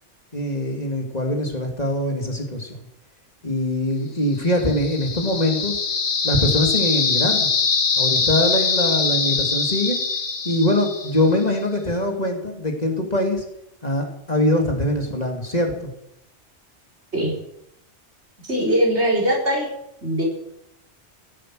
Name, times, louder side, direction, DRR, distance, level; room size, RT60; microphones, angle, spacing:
voice 1, 0.3-2.8 3.4-5.8 6.2-7.5 8.0-10.0 10.4-13.4 13.8-15.9, left 1 dB, 35° left, 2 dB, 2.6 m, -23 dB
sound 1, 4.4-11.4, left 5 dB, 65° left, 1.6 m, -23 dB
voice 2, 18.5-19.7 20.0-20.2, equal, 70° right, -2 dB, 5.0 m, -20 dB
15.5 x 10.5 x 7.6 m, 0.80 s
omnidirectional pair, 1.2 m